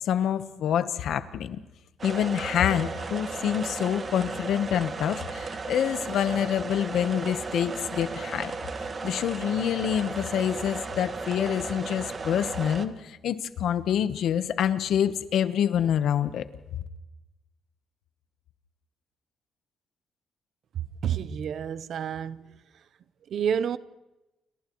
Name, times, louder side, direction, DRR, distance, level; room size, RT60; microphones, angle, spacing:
voice 1, 0.0-1.6 2.0-8.5 9.0-16.4, left 9 dB, 75° left, 1.0 m, -27 dB
sound 1, 2.0-12.9, right 4 dB, 40° right, 1.6 m, -35 dB
voice 2, 20.7-22.6 23.3-23.8, right 8 dB, 65° right, 0.7 m, -29 dB
29.5 x 29.0 x 3.1 m
cardioid pair, 90°, 0 cm